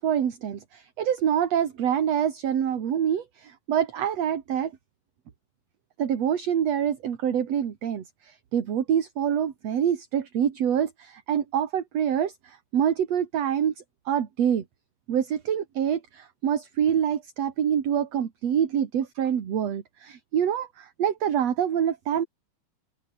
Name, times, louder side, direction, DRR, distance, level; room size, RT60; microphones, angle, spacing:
voice 1, 0.0-4.7 6.0-13.7 14.1-14.6 15.1-22.3, right 9 dB, 55° right, 3.0 m, -26 dB
open air
omnidirectional pair, 3.8 m